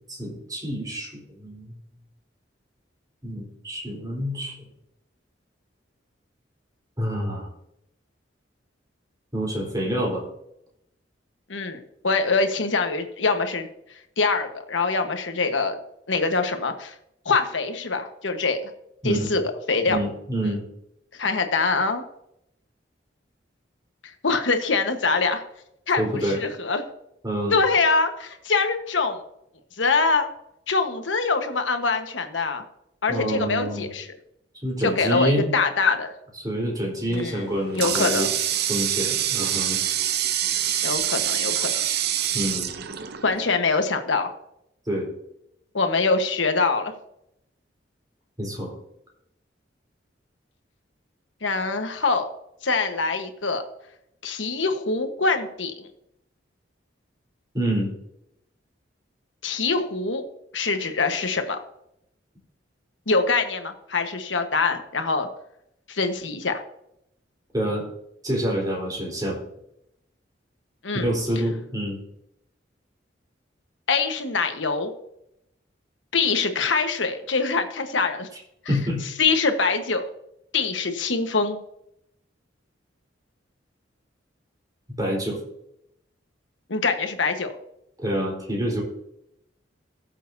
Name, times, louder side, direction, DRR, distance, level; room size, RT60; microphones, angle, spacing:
voice 1, 0.1-1.7 3.2-4.5 7.0-7.5 9.3-10.2 19.0-19.3 19.9-20.6 26.0-26.4 27.2-27.5 33.1-33.9 34.6-35.5 36.4-38.3 38.7-39.8 42.3-42.8 44.9-45.1 48.4-48.7 57.5-57.9 67.5-67.9 68.2-69.4 70.9-72.0 78.7-79.0 85.0-85.4 88.0-88.8, equal, 20° right, -3 dB, 4.1 m, -27 dB
voice 2, 11.5-13.7 14.2-15.8 16.1-16.9 17.2-18.7 19.0-19.4 19.7-20.0 20.4-20.5 21.1-22.0 24.2-25.4 25.9-26.8 27.5-29.2 29.8-30.3 30.7-32.6 33.0-34.1 34.8-36.1 37.1-37.5 37.8-38.3 40.8-41.9 43.2-44.3 45.7-46.9 51.4-52.3 52.6-53.6 54.2-55.9 59.4-60.2 60.5-61.6 63.1-65.3 65.9-66.6 70.8-71.1 73.9-74.9 76.1-78.3 79.2-80.1 80.5-81.6 86.7-87.5, left 4 dB, 85° left, 6 dB, 1.3 m, -24 dB
Water tap faucet, 37.1-43.6, right 10 dB, 60° right, 0.7 m, -26 dB
18.5 x 7.5 x 2.7 m, 0.79 s
head